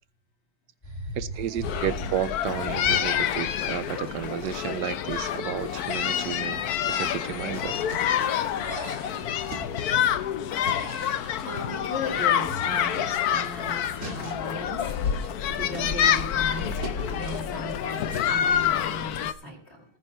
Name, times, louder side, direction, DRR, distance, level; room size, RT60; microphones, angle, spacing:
sound 1, 0.8-5.0 6.8-7.6 8.6-9.4 10.6-11.7 13.3-15.4 15.8-16.2 16.7-17.8, right 3 dB, 80° right, 3.6 m, -47 dB
voice 1, 1.1-6.6 6.9-7.7, right 10 dB, 65° right, 1.2 m, -32 dB
sound 2, 1.6-19.3, left 9 dB, 65° left, 1.0 m, -27 dB
sound 3, 2.0-2.8 3.2-8.7 8.9-18.5, right 3 dB, 40° right, 2.5 m, -44 dB
voice 2, 11.3-19.8, left 1 dB, 30° left, 5.4 m, -38 dB
19.5 x 9.9 x 3.0 m
omnidirectional pair, 2.2 m